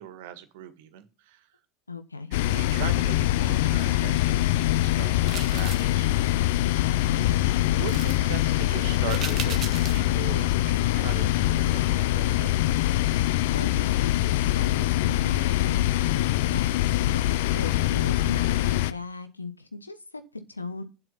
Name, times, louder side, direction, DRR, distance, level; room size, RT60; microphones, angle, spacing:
voice 1, 0.0-1.5 2.5-6.2 7.7-12.6, right 11 dB, 65° right, 9 dB, 1.8 m, -39 dB
voice 2, 1.9-2.3 13.5-20.8, left 3 dB, 90° left, 9 dB, 1.2 m, -38 dB
sound 1, 2.3-18.9, left 15 dB, 65° left, 0.6 m, -24 dB
sound 2, 5.3-5.9 7.9-8.2 9.1-10.1 10.5-10.6, right 9 dB, 35° right, 1.6 m, -37 dB
8.7 x 7.7 x 5.6 m, 0.30 s
figure-of-eight pair, 80°, 0 cm